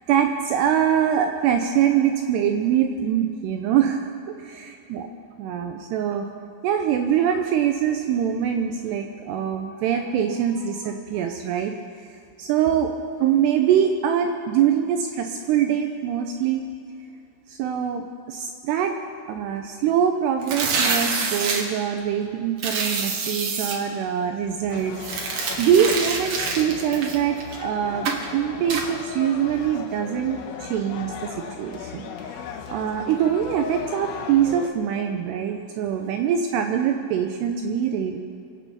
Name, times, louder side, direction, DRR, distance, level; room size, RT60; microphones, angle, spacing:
voice 1, 0.1-4.0 4.4-5.1 5.4-6.3 6.6-11.7 12.4-12.9 13.2-16.7 17.5-18.9 19.3-24.9 25.3-28.1 28.3-38.2, right 9 dB, 85° right, 5 dB, 2.4 m, -23 dB
sound 1, 20.4-21.6 22.6-23.8 25.0-27.6 28.1-28.3 28.7-28.9, right 4 dB, 65° right, 2.2 m, -26 dB
sound 2, 24.7-34.7, left 7 dB, 80° left, 3.4 m, -37 dB
25.0 x 8.4 x 5.6 m, 2.6 s
omnidirectional pair, 5.7 m